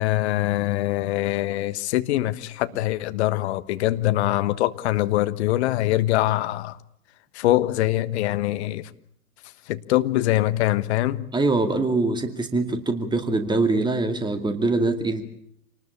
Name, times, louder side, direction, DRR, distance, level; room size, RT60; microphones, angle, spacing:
voice 1, 0.0-6.8 7.3-8.9 9.7-11.3, left 15 dB, 45° left, 1.4 m, -23 dB
voice 2, 11.3-15.2, right 2 dB, 10° right, 2.3 m, -23 dB
27.5 x 19.5 x 8.4 m
figure-of-eight pair, 95°, 45 cm